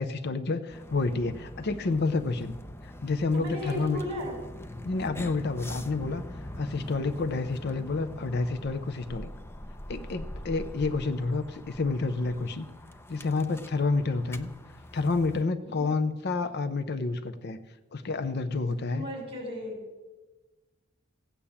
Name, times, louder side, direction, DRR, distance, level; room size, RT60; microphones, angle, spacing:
voice 1, 0.0-2.5 2.8-4.0 4.8-6.2 6.6-9.3 9.9-12.7 13.1-14.5 14.9-17.6 17.9-19.1, left 3 dB, 55° left, 11 dB, 0.6 m, -29 dB
sound 1, 0.7-15.4, left 1 dB, 10° left, 0.6 m, -43 dB
voice 2, 3.3-4.4 11.0-11.1 15.6-15.9 18.9-19.8, left 1 dB, 30° right, 0 dB, 5.5 m, -36 dB
16.0 x 8.7 x 7.1 m, 1.2 s
head